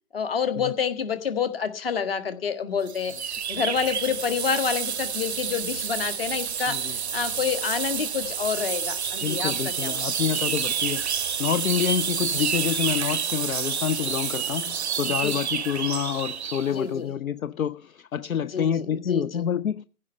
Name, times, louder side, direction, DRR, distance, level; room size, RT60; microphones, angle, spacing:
voice 1, 0.1-10.1 10.5-10.6 15.0-15.3 16.7-17.1 18.5-19.4, left 6 dB, 40° left, 1.6 m, -28 dB
sound 1, 2.9-16.7, right 7 dB, 50° right, 0.6 m, -29 dB
voice 2, 9.2-19.8, left 8 dB, 65° left, 0.6 m, -28 dB
15.5 x 5.6 x 9.2 m
figure-of-eight pair, 155°, 44 cm